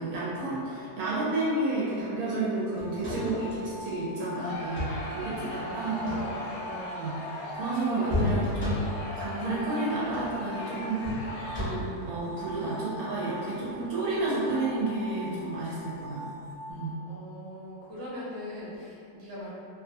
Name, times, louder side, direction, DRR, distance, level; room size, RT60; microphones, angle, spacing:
voice 1, 0.0-6.1 6.9-16.2 16.7-17.0, right 2 dB, 75° right, -8 dB, 1.0 m, -31 dB
sound 1, 2.8-16.7, left 1 dB, 65° left, 0.7 m, -44 dB
sound 2, 2.8-3.6 4.5-5.1 5.9-6.7 8.1-9.2 10.0-10.4 11.0-12.0 13.7-13.8, left 1 dB, 20° left, 0.3 m, -33 dB
Crowd, 4.4-12.1, left 2 dB, 85° left, 1.1 m, -39 dB
voice 2, 5.8-6.9 17.1-19.5, left 1 dB, 35° right, -10 dB, 0.8 m, -40 dB
2.6 x 2.3 x 2.6 m, 2.6 s
omnidirectional pair, 1.7 m